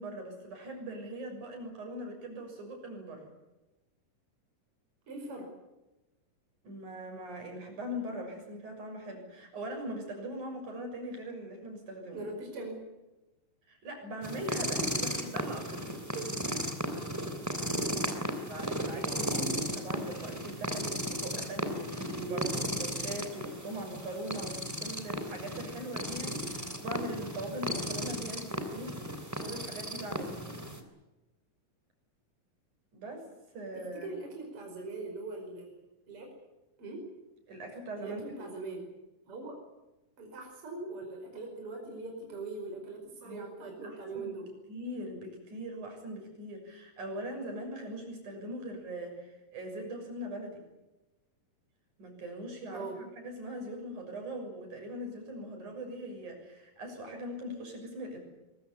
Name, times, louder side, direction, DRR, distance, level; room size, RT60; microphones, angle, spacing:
voice 1, 0.0-3.3 6.6-12.3 13.7-16.0 18.0-19.1 19.7-22.4 22.8-29.0 29.4-30.4 32.9-33.3 33.5-34.1 37.5-38.5 43.2-44.4 44.7-50.6 52.0-58.2, right 1 dB, 65° right, 3 dB, 8.0 m, -41 dB
voice 2, 5.1-5.5 12.1-12.8 16.1-16.2 18.2-18.3 18.8-19.7 22.1-22.5 34.0-35.7 36.1-36.3 36.8-37.1 38.0-38.9 39.2-39.6 40.2-44.5 52.7-53.0, right 3 dB, 40° right, 2 dB, 5.9 m, -41 dB
sound 1, 14.2-30.8, equal, 5° right, 2.8 m, -35 dB
23.0 x 22.5 x 8.4 m, 1.0 s
omnidirectional pair, 3.8 m